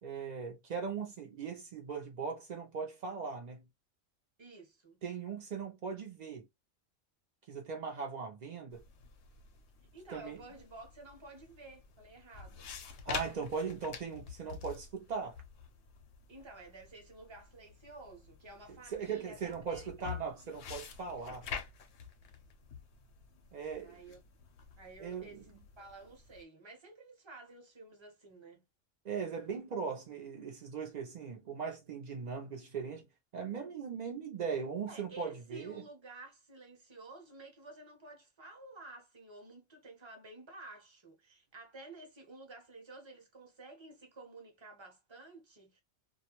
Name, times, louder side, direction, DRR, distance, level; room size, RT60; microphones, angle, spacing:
voice 1, 0.0-3.6 5.0-6.5 7.5-8.8 10.1-10.4 13.1-15.4 18.9-21.5 23.5-23.9 25.0-25.5 29.0-33.1 33.3-35.9, right 5 dB, 75° right, 0.4 m, -39 dB
voice 2, 4.4-5.0 9.9-12.7 16.3-20.6 23.7-24.2 24.8-28.6 34.9-45.8, right 2 dB, 30° right, 0.6 m, -52 dB
sound 1, 8.7-26.4, left 6 dB, 65° left, 0.8 m, -48 dB
2.3 x 2.1 x 2.8 m
omnidirectional pair, 1.3 m